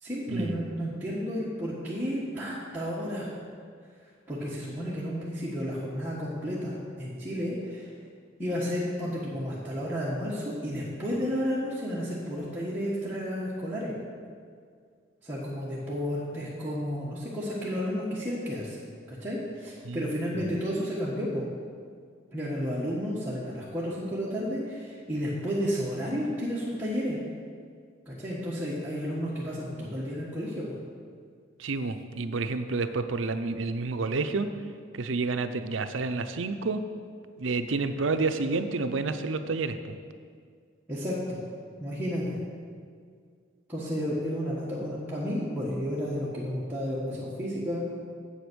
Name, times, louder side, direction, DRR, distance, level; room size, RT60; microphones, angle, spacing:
voice 1, 0.0-3.3 4.3-7.9 8.4-13.9 15.2-18.8 19.1-21.5 22.3-27.2 28.1-30.7 40.9-41.4 41.8-42.4 43.7-47.8, equal, 10° right, -9 dB, 1.4 m, -32 dB
voice 2, 19.8-20.5 31.6-34.5 34.9-36.8 37.4-39.9, right 3 dB, 75° right, 9 dB, 0.6 m, -29 dB
8.4 x 8.0 x 6.2 m, 2.1 s
head